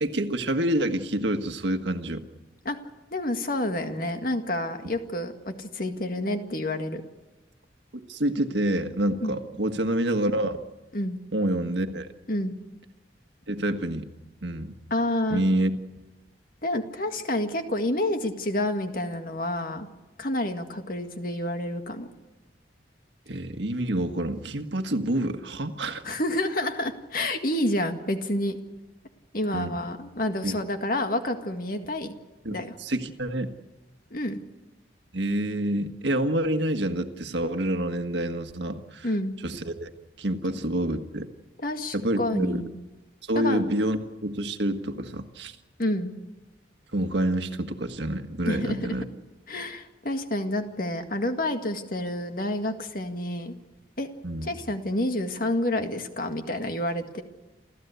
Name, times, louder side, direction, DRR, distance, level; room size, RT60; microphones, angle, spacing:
voice 1, 0.0-2.2 8.1-10.6 11.3-12.1 13.5-14.1 14.4-14.7 15.3-15.7 23.3-26.0 29.5-29.8 30.4-30.6 32.4-33.5 35.1-39.1 39.4-39.9 40.2-41.3 41.9-42.6 43.2-45.6 46.9-49.1 54.2-54.6, right 1 dB, 80° right, 6 dB, 1.7 m, -27 dB
voice 2, 3.1-7.0 9.2-9.3 10.9-11.2 12.3-12.5 14.9-15.4 16.6-19.9 20.2-22.1 26.0-28.6 29.3-32.1 32.5-32.7 34.1-34.4 39.0-39.3 41.6-42.7 43.3-43.7 45.8-46.1 48.4-48.8 49.5-53.5 54.0-54.1 54.4-57.2, left 1 dB, 50° left, 6 dB, 2.0 m, -29 dB
28.5 x 14.5 x 8.2 m, 1.1 s
head